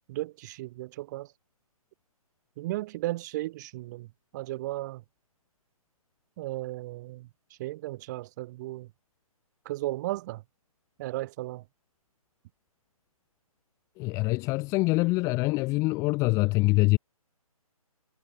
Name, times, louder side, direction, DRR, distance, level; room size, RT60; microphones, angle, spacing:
voice 1, 0.1-1.3 2.6-5.0 6.4-7.3 7.6-8.9 9.7-10.4 11.0-11.6, right 17 dB, 30° right, 5.6 m, -35 dB
voice 2, 14.0-17.0, left 23 dB, 15° left, 1.1 m, -24 dB
figure-of-eight pair, 145°, 19 cm